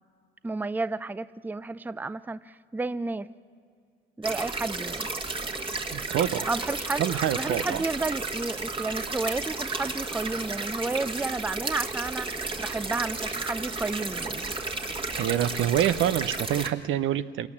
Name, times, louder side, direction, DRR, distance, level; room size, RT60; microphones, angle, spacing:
voice 1, 0.4-3.3 4.2-5.1 6.5-14.6, right 3 dB, 10° right, 16 dB, 0.5 m, -32 dB
sound 1, 4.2-16.7, right 3 dB, 25° right, 1.6 m, -33 dB
voice 2, 5.9-6.5 7.0-7.8 15.2-17.5, right 11 dB, 80° right, 13 dB, 0.8 m, -26 dB
27.0 x 18.0 x 7.4 m, 2.3 s
cardioid pair, 90°, 20 cm